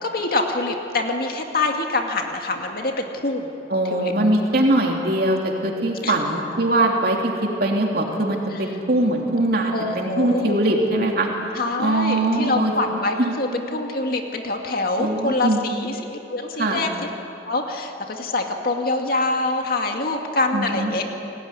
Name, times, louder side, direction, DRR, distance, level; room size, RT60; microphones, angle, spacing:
voice 1, 0.0-3.5 3.9-4.1 6.0-6.1 9.7-10.6 11.5-16.9 17.4-21.1, left 2 dB, 55° left, 3 dB, 2.3 m, -25 dB
voice 2, 3.7-11.3 11.8-12.7 13.2-13.4 15.0-15.6 16.6-16.9 20.5-20.9, right 1 dB, 55° right, 0 dB, 3.0 m, -21 dB
29.5 x 19.0 x 9.8 m, 2.9 s
head